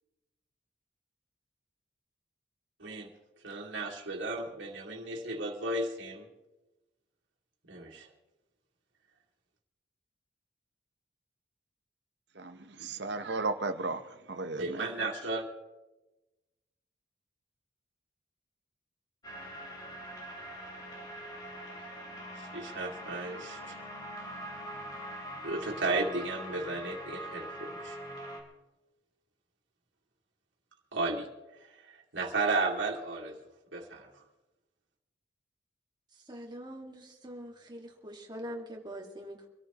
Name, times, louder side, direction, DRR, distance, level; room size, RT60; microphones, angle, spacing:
voice 1, 3.4-6.3 7.7-8.1 14.6-15.4 22.4-23.8 25.4-28.0 30.9-31.3 31.8-33.4 33.7-34.1, right 2 dB, 80° right, -2 dB, 2.4 m, -34 dB
voice 2, 12.4-14.0 14.3-14.9, right 3 dB, 65° right, 9 dB, 1.0 m, -34 dB
sound 1, 19.2-28.4, equal, 20° left, 2.6 m, -43 dB
voice 3, 36.1-39.5, equal, 25° right, 1 dB, 1.9 m, -44 dB
25.0 x 14.0 x 3.0 m, 1.1 s
head